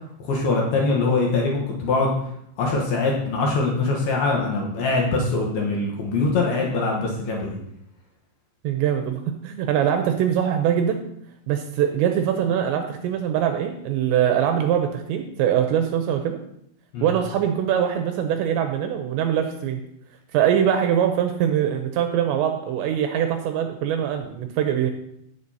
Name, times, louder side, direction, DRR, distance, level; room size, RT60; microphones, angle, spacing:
voice 1, 0.2-2.1 2.6-7.6 16.9-17.1, left 3 dB, 70° left, -1 dB, 2.6 m, -23 dB
voice 2, 8.6-11.0 11.5-16.4 17.0-19.8 20.3-24.9, right 9 dB, 80° right, 6 dB, 2.7 m, -23 dB
16.0 x 6.8 x 2.8 m, 0.75 s
omnidirectional pair, 5.6 m